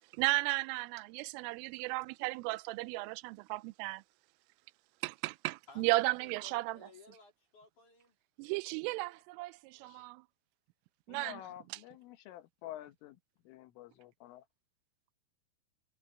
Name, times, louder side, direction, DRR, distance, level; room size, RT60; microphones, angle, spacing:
voice 1, 0.1-4.0 5.0-6.8 8.4-10.2 11.1-11.4 11.7-11.8, right 22 dB, 90° right, 3.2 m, -35 dB
voice 2, 5.7-8.2 9.7-10.0, left 4 dB, 40° left, 4.8 m, -58 dB
voice 3, 11.1-13.2 13.5-14.4, left 13 dB, 85° left, 3.9 m, -49 dB
omnidirectional pair, 5.6 m